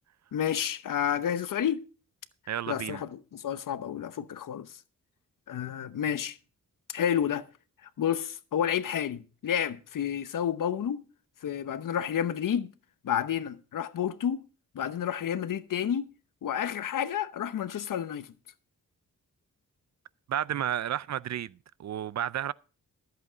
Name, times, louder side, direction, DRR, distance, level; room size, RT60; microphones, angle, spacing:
voice 1, 0.3-1.8 2.7-4.7 5.5-6.4 6.9-7.4 8.0-11.0 11.4-12.7 13.0-14.4 14.7-16.1 16.4-18.3, left 9 dB, 75° left, 0.9 m, -30 dB
voice 2, 2.5-3.0 20.3-22.5, right 10 dB, 60° right, 0.5 m, -32 dB
13.5 x 8.0 x 5.0 m
wide cardioid pair, 110°, 32 cm